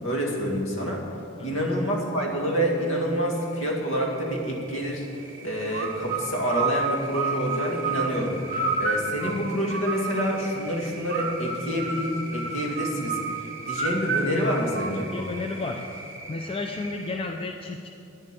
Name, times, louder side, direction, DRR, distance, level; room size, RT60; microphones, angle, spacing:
voice 1, 0.0-1.0 1.4-5.0 5.4-13.2 13.7-15.1, equal, 65° left, -1 dB, 2.1 m, -27 dB
sound 1, 2.3-17.2, right 2 dB, 15° right, 2.0 m, -44 dB
sound 2, 5.7-10.4 11.1-15.6, right 4 dB, 40° right, 1.0 m, -30 dB
voice 2, 15.1-15.8 16.3-17.9, left 3 dB, 25° left, 3 dB, 0.4 m, -32 dB
10.0 x 7.7 x 9.0 m, 2.7 s
head